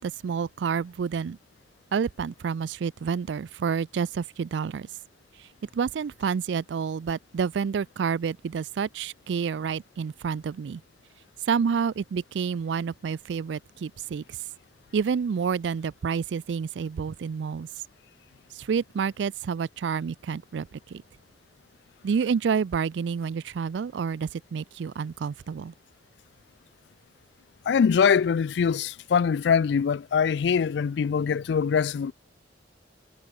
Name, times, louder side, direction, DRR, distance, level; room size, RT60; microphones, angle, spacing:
voice 1, 0.0-1.4 1.9-4.9 5.4-5.5 5.7-10.8 11.5-14.4 14.9-17.7 18.5-21.0 22.0-25.7, right 6 dB, 80° right, 0.4 m, -29 dB
voice 2, 27.7-32.1, left 6 dB, 70° left, 0.3 m, -23 dB
head